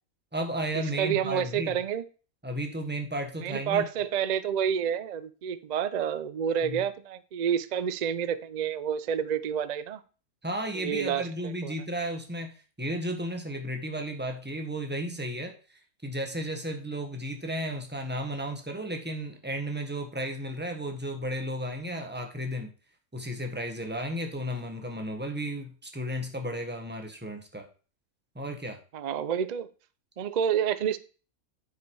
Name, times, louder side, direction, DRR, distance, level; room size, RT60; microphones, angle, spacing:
voice 1, 0.3-1.7 2.4-3.8 6.6-6.8 10.4-22.7 23.1-27.7 28.3-28.8, equal, 10° right, 4 dB, 1.2 m, -34 dB
voice 2, 1.0-2.0 3.4-10.0 10.7-11.7 28.9-29.7 30.2-31.0, right 8 dB, 70° right, 13 dB, 0.4 m, -29 dB
9.3 x 5.0 x 4.7 m, 0.37 s
omnidirectional pair, 1.5 m